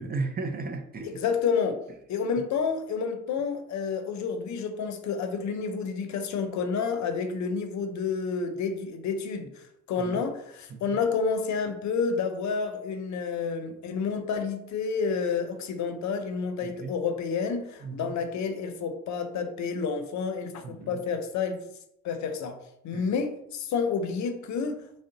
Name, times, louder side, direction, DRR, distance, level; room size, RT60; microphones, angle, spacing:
voice 1, 0.0-1.2 10.0-10.2 10.7-11.0 16.6-16.9 17.8-18.1 20.6-21.0 22.9-23.1, right 3 dB, 30° right, 0.4 m, -35 dB
voice 2, 1.0-1.8 2.1-21.6 22.0-22.6 22.8-24.8, left 5 dB, 70° left, 0.6 m, -29 dB
3.7 x 2.1 x 3.8 m
cardioid pair, 90°, 30 cm